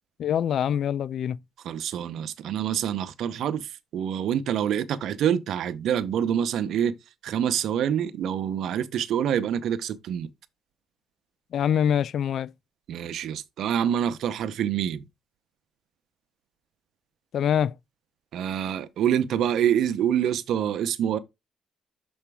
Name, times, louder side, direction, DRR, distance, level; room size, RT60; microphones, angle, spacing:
voice 1, 0.2-1.4 11.5-12.5 17.3-17.7, left 9 dB, 65° left, 0.3 m, -24 dB
voice 2, 1.6-7.0 7.2-10.3 12.9-15.1 18.3-21.2, right 9 dB, 75° right, 0.7 m, -26 dB
6.9 x 4.3 x 3.5 m
cardioid pair, 90°, 0 cm